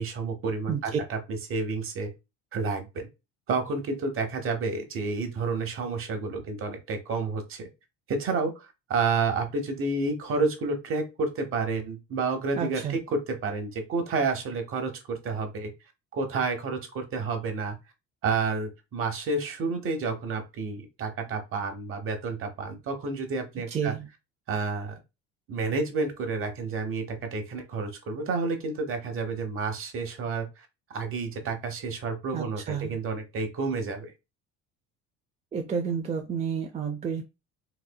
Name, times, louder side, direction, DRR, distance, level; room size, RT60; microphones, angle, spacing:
voice 1, 0.0-2.1 2.5-3.1 3.5-7.7 8.1-15.7 16.1-17.8 18.2-23.9 24.5-24.9 25.5-34.1, right 4 dB, 45° right, 5 dB, 1.0 m, -30 dB
voice 2, 0.7-1.0 12.6-13.0 23.7-24.1 32.3-33.0 35.5-37.3, right 7 dB, 25° right, 3 dB, 0.4 m, -30 dB
4.1 x 2.6 x 2.2 m, 0.25 s
cardioid pair, 120°, 30 cm